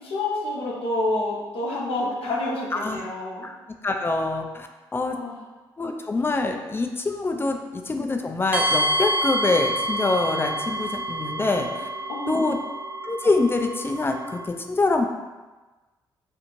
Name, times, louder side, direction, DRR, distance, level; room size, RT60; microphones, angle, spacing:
voice 1, 0.0-3.5 5.1-5.4 7.3-7.5 12.1-12.6, left 2 dB, 65° left, -4 dB, 0.6 m, -28 dB
voice 2, 3.8-5.2 5.8-11.7 12.3-12.6 13.0-15.1, left 3 dB, 20° left, 4 dB, 0.4 m, -25 dB
sound 1, 8.5-14.5, right 1 dB, 15° right, 0.6 m, -28 dB
2.5 x 2.4 x 3.0 m, 1.2 s
hypercardioid pair, 45°, 10 cm